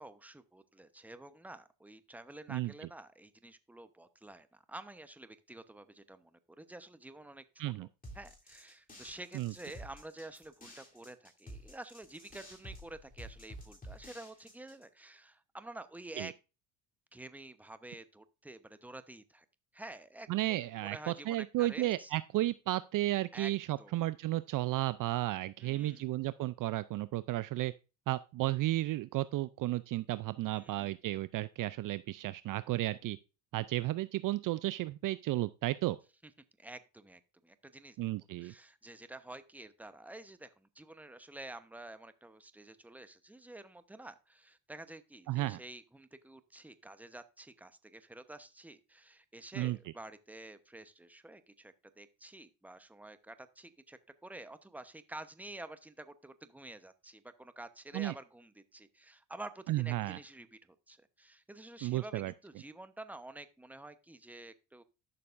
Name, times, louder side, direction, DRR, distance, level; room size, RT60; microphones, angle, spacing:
voice 1, 0.0-7.4 7.8-7.9 8.1-16.3 17.1-19.4 19.7-22.1 23.3-23.5 23.8-24.0 25.6-26.1 30.5-31.0 36.6-38.0 38.4-64.8, right 2 dB, 5° right, 0.9 m, -49 dB
sound 1, 8.0-14.8, equal, 20° left, 3.2 m, -51 dB
voice 2, 20.3-27.7 28.1-33.2 33.5-36.0 38.0-38.5 45.3-45.6 49.6-49.8 57.9-58.1 59.7-60.2 61.8-62.3, right 16 dB, 50° right, 0.5 m, -33 dB
12.0 x 6.8 x 2.6 m
supercardioid pair, 75°, 42 cm